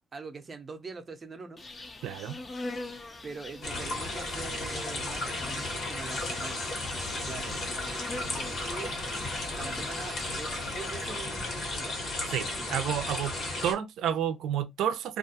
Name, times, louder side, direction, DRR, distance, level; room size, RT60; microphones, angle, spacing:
voice 1, 0.1-1.6 3.2-8.9 9.6-12.0 12.6-12.9, right 4 dB, 35° right, 0.6 m, -43 dB
Insect, 1.6-11.4, left 2 dB, 30° left, 0.5 m, -43 dB
voice 2, 2.0-2.4 12.3-13.3 13.6-15.2, right 9 dB, 80° right, 0.4 m, -30 dB
sound 1, 3.6-13.7, left 2 dB, 60° left, 1.2 m, -34 dB
2.4 x 2.2 x 2.7 m
cardioid pair, 90°, 0 cm